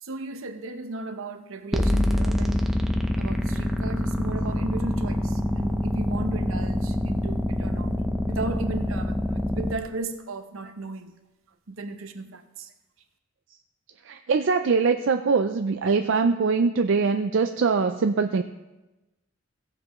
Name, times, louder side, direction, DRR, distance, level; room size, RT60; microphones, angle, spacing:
voice 1, 0.0-2.7 3.2-8.0 8.3-11.1 11.7-12.7, right 3 dB, 85° right, 0.8 m, -36 dB
sound 1, 1.7-9.7, left 1 dB, ahead, 0.6 m, -25 dB
voice 2, 14.1-18.4, right 4 dB, 65° right, 0.4 m, -22 dB
17.0 x 7.6 x 3.1 m
head